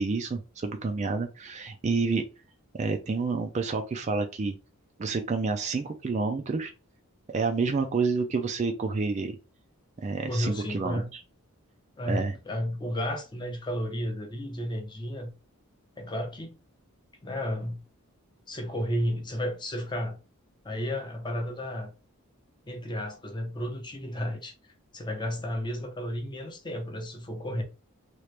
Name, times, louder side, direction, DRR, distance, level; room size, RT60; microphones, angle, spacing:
voice 1, 0.0-2.2 2.8-4.6 5.0-6.7 7.3-9.4 10.0-11.2 12.1-12.3, right 4 dB, 30° right, 0.3 m, -29 dB
voice 2, 10.3-11.1 12.0-15.3 16.0-16.6 17.2-17.8 18.5-20.2 20.6-21.9 22.7-24.5 24.9-27.6, equal, 20° left, 0.6 m, -32 dB
2.9 x 2.4 x 3.2 m
head